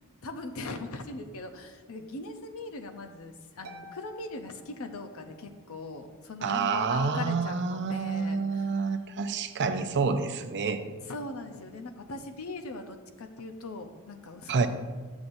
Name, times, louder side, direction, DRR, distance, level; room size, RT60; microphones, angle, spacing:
voice 1, 0.2-9.0 11.0-14.5, left 2 dB, 70° left, 5 dB, 0.7 m, -40 dB
Harp, 3.6-5.5, left 2 dB, 85° right, 0.8 m, -50 dB
voice 2, 6.4-10.8 14.5-14.7, right 4 dB, 50° right, 8 dB, 0.5 m, -28 dB
11.0 x 7.1 x 2.6 m, 1.4 s
head